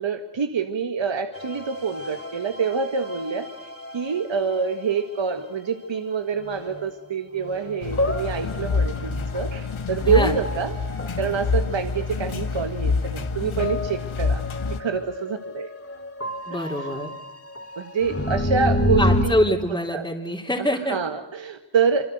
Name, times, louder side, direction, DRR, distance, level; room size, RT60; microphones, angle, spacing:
voice 1, 0.0-3.5 3.9-10.7 11.2-14.4 14.7-15.7 16.5-16.9 17.8-19.4 19.9-20.1 20.9-22.0, right 6 dB, 60° right, 7 dB, 1.8 m, -26 dB
sound 1, 1.3-5.2 6.4-6.9 7.4-19.2, left 1 dB, 25° left, 3.2 m, -30 dB
sound 2, 7.8-14.8, left 4 dB, 70° left, 2.0 m, -27 dB
voice 2, 16.5-17.1 18.9-21.0, equal, 10° left, -3 dB, 3.5 m, -25 dB
26.5 x 25.5 x 8.1 m, 0.89 s
cardioid pair, 60°, 50 cm